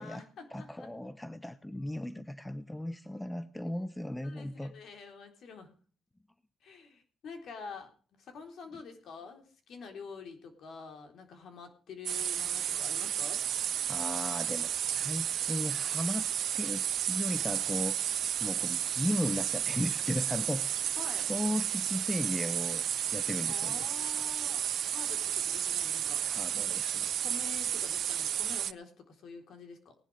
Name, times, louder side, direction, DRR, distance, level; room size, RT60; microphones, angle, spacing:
voice 1, 0.0-0.9 4.2-5.7 6.6-13.4 21.0-21.3 23.5-26.2 27.2-30.0, left 5 dB, 65° left, 3.9 m, -47 dB
voice 2, 0.5-4.7 13.9-22.8 23.1-23.9 26.2-27.1, left 1 dB, 10° left, 0.7 m, -36 dB
sound 1, 12.1-28.7, right 10 dB, 65° right, 0.5 m, -32 dB
19.5 x 10.5 x 3.4 m
cardioid pair, 115°, 0 cm